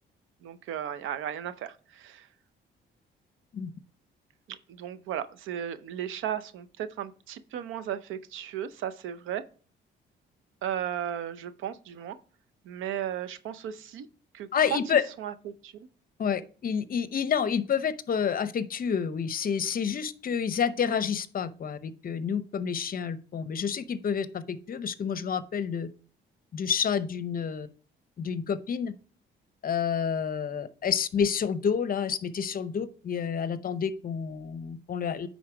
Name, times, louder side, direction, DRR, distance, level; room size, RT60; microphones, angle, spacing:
voice 1, 0.4-2.3 4.5-9.4 10.6-12.2 12.6-14.1 14.3-14.8 15.2-15.9, right 10 dB, 85° right, 0.7 m, -35 dB
voice 2, 14.5-15.0 16.2-25.9 26.5-27.7 28.2-28.9 29.6-35.3, left 7 dB, 45° left, 0.7 m, -29 dB
9.4 x 3.9 x 4.9 m
cardioid pair, 90°, 20 cm